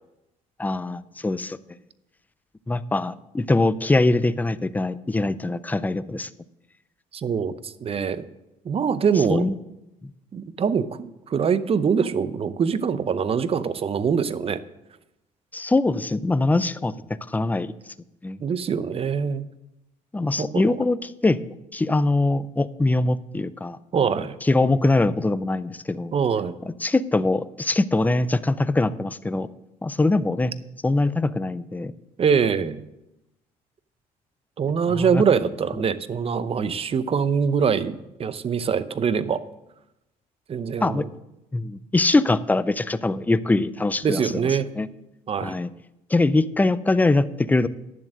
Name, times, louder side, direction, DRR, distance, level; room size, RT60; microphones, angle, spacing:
voice 1, 0.6-1.6 2.7-6.3 9.3-9.6 15.5-16.9 17.3-17.7 18.2-18.4 20.1-21.4 21.7-23.8 24.4-26.1 26.8-29.5 29.8-30.5 30.8-31.9 34.9-35.2 40.8-41.0 41.5-44.4 44.8-44.9 45.4-45.7 46.1-47.7, left 2 dB, 10° left, 15 dB, 0.5 m, -22 dB
voice 2, 7.1-8.2 8.6-9.5 10.3-10.9 11.3-14.6 18.4-19.5 20.4-20.8 23.9-24.4 26.1-26.6 32.2-32.8 34.6-39.4 40.5-41.1 44.0-44.7 45.3-45.5, right 6 dB, 35° right, 15 dB, 0.7 m, -23 dB
10.5 x 7.3 x 6.3 m, 0.92 s
supercardioid pair, 85°, 16 cm